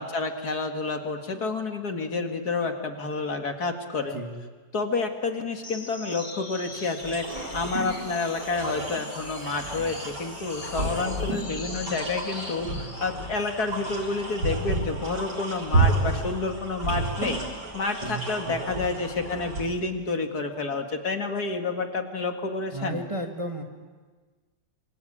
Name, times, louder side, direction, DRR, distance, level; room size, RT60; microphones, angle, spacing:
voice 1, 0.0-4.2 4.7-7.3 7.5-17.4 17.7-23.0, left 3 dB, 60° left, 5 dB, 2.4 m, -29 dB
sound 1, 5.6-13.2, left 2 dB, 25° left, 2.1 m, -42 dB
sound 2, 7.0-19.6, right 2 dB, 65° right, 4.5 m, -31 dB
voice 2, 22.7-23.6, right 1 dB, 15° right, 2 dB, 2.2 m, -33 dB
26.0 x 26.0 x 8.7 m, 1.4 s
omnidirectional pair, 2.0 m